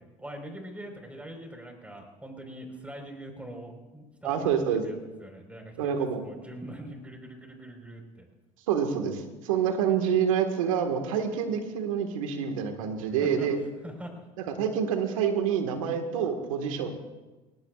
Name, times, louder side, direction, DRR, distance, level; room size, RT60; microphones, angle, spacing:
voice 1, 0.0-4.3 4.8-8.3 13.2-13.5 13.8-14.2, right 1 dB, 10° right, 3 dB, 4.5 m, -43 dB
voice 2, 4.2-4.8 5.8-6.2 8.7-13.6 14.5-16.9, right 7 dB, 90° right, 6 dB, 1.7 m, -27 dB
21.0 x 18.0 x 2.5 m, 1.2 s
hypercardioid pair, 75°, 17 cm